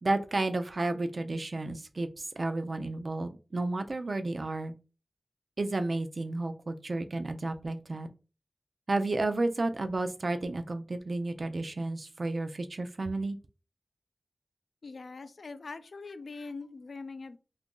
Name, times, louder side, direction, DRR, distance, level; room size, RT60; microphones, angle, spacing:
voice 1, 0.0-4.7 5.6-8.1 8.9-13.4, right 2 dB, 55° right, 8 dB, 0.4 m, -32 dB
voice 2, 14.8-17.4, left 4 dB, 80° left, 12 dB, 0.3 m, -42 dB
2.9 x 2.5 x 3.6 m, 0.33 s
wide cardioid pair, 90°, 0 cm